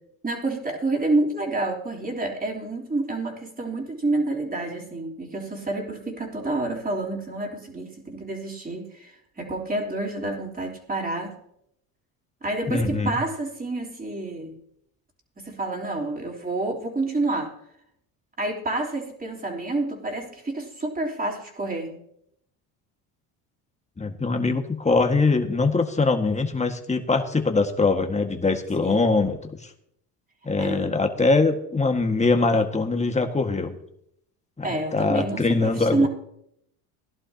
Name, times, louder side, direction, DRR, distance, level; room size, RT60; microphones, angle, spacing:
voice 1, 0.2-11.4 12.4-14.6 15.4-17.5 18.4-22.0 28.8-29.1 30.6-30.9 34.6-36.1, right 2 dB, 20° right, 0 dB, 3.5 m, -28 dB
voice 2, 12.7-13.2 24.0-29.7 30.4-33.7 34.9-36.1, left 3 dB, 15° left, 5 dB, 1.7 m, -22 dB
17.5 x 11.0 x 2.9 m, 0.75 s
hypercardioid pair, 75°, 46 cm